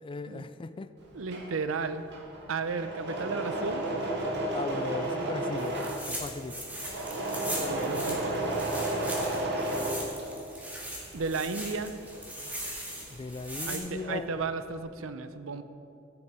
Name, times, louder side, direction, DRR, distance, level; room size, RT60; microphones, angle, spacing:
voice 1, 0.0-0.9 4.5-5.8 6.1-6.7 13.1-14.3, left 3 dB, 25° left, 13 dB, 0.3 m, -38 dB
Engine / Mechanisms, 1.0-10.7 11.0-13.4 13.6-14.3, right 1 dB, 55° right, 1.8 m, -33 dB
voice 2, 1.1-2.0 2.5-3.9 7.7-8.5 11.1-11.9 13.7-15.6, right 4 dB, 75° right, 11 dB, 0.6 m, -34 dB
sound 1, 5.6-13.8, right 1 dB, 10° right, 1.9 m, -40 dB
15.0 x 7.0 x 4.8 m, 2.7 s
head